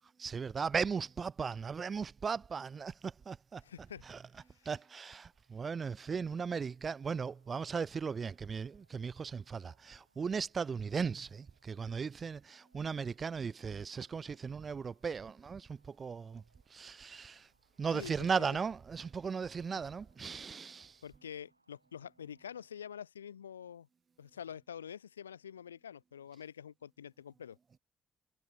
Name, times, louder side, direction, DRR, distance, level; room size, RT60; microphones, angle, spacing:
voice 1, 0.2-3.6 4.1-4.2 4.6-16.4 16.7-17.5 17.8-21.0, right 5 dB, 40° right, 0.5 m, -37 dB
voice 2, 3.6-4.0 4.4-4.7 17.8-18.6 19.7-19.8 21.0-23.9 24.2-27.6, left 8 dB, 80° left, 0.5 m, -47 dB
sound 1, 3.9-23.1, right 2 dB, 90° right, 5.4 m, -77 dB
figure-of-eight pair, 45°, 0 cm